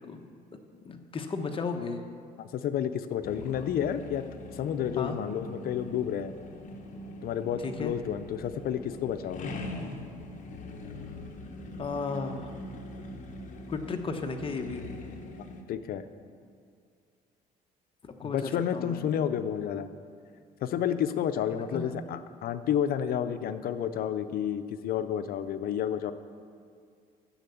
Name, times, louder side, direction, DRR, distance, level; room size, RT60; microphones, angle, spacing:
voice 1, 0.8-2.0 5.0-5.2 7.6-7.9 11.8-12.5 13.7-14.8 18.0-19.0 21.5-21.9, left 4 dB, 30° left, 5 dB, 1.1 m, -34 dB
voice 2, 2.4-4.2 4.5-6.3 7.2-9.5 15.7-16.0 18.2-19.9 20.6-26.1, left 9 dB, 65° left, 11 dB, 0.6 m, -30 dB
sound 1, 3.2-15.6, left 1 dB, 50° left, 1.3 m, -42 dB
10.0 x 7.7 x 7.0 m, 2.2 s
cardioid pair, 110°, 17 cm